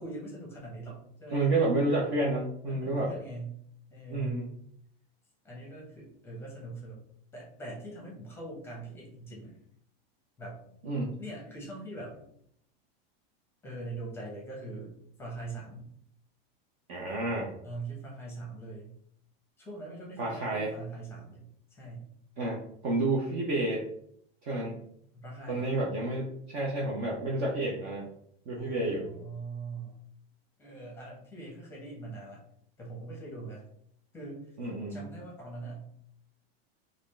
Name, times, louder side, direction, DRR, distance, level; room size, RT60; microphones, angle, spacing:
voice 1, 0.0-1.5 2.7-3.6 3.9-4.5 5.4-7.0 7.3-9.6 10.4-10.7 11.2-12.3 13.6-15.9 17.6-18.9 19.6-22.1 25.1-25.7 28.5-30.0 30.6-32.4 32.8-33.7 34.1-34.6 34.9-35.9, right 2 dB, 10° left, -3 dB, 0.8 m, -42 dB
voice 2, 1.3-3.1 4.1-4.5 10.8-11.2 16.9-17.5 20.2-20.7 22.4-23.9 24.4-24.8 25.5-28.1 28.5-29.1 34.6-35.1, right 2 dB, 30° right, -3 dB, 0.4 m, -30 dB
3.8 x 2.4 x 3.2 m, 0.69 s
supercardioid pair, 175°, 31 cm